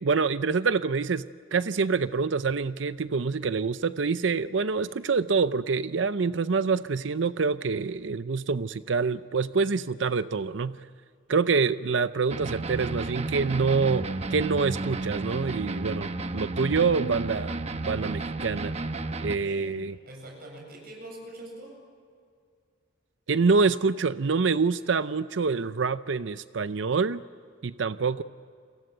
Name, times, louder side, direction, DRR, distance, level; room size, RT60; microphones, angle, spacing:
voice 1, 0.0-10.8 11.3-17.6 17.9-18.7 19.2-20.0 23.3-27.2 27.6-28.2, right 4 dB, 75° right, 13 dB, 0.6 m, -26 dB
sound 1, 12.3-19.4, right 2 dB, 35° right, 1.0 m, -32 dB
voice 2, 19.4-19.7 20.0-21.8, right 1 dB, 55° right, 1 dB, 7.6 m, -43 dB
30.0 x 23.5 x 8.0 m, 2.2 s
head